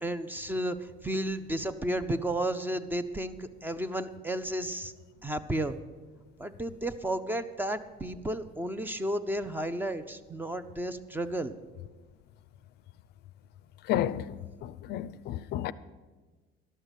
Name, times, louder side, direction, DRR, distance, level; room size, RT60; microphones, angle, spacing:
voice 1, 0.0-0.8 1.0-4.9 5.2-5.7 6.4-11.5, right 1 dB, 10° right, 0.4 m, -32 dB
voice 2, 13.8-15.7, left 12 dB, 55° left, 0.4 m, -32 dB
12.0 x 6.6 x 9.0 m
cardioid pair, 150°, 20 cm